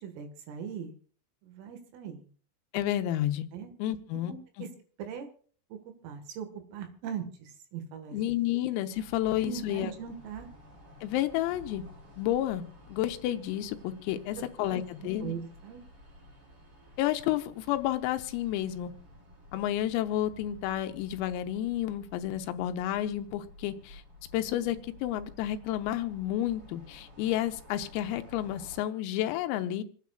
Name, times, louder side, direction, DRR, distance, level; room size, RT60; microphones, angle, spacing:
voice 1, 0.0-1.0 1.4-2.3 3.5-3.7 4.3-4.7 5.0-5.3 5.7-5.8 6.0-8.2 9.4-10.5 14.4-15.8, right 7 dB, 75° right, 6 dB, 4.2 m, -40 dB
voice 2, 2.7-3.5 3.8-4.3 4.6-4.7 8.1-9.9 11.0-11.8 12.2-12.6 12.9-15.3 17.0-18.9 19.5-24.0 24.3-29.8, left 13 dB, 90° left, 8 dB, 3.5 m, -31 dB
sound 1, 8.9-28.8, left 1 dB, 40° right, 4.9 m, -52 dB
28.0 x 9.4 x 2.4 m, 0.43 s
omnidirectional pair, 6.0 m